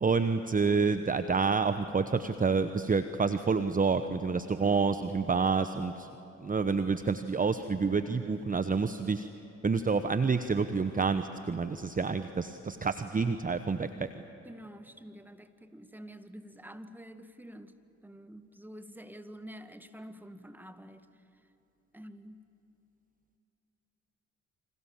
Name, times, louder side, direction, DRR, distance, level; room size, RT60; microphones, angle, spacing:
voice 1, 0.0-6.1 6.4-9.3 9.6-14.2, right 4 dB, 25° right, 10 dB, 1.1 m, -28 dB
voice 2, 14.5-17.8 18.0-21.1 21.9-22.5, equal, 5° right, 9 dB, 1.8 m, -48 dB
29.0 x 25.5 x 7.5 m, 2.8 s
hypercardioid pair, 50°, 36 cm